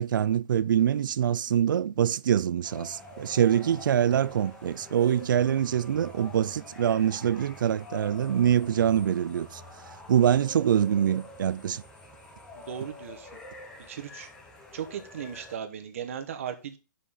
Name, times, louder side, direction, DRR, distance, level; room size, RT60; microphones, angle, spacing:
voice 1, 0.0-9.6 10.1-11.8, right 9 dB, 85° right, 0.4 m, -24 dB
sound 1, 2.6-15.5, left 2 dB, 5° left, 0.8 m, -46 dB
voice 2, 12.6-13.3 13.9-14.3 14.7-16.8, right 8 dB, 45° right, 1.0 m, -37 dB
5.7 x 5.1 x 5.0 m
hypercardioid pair, 180°, 11 cm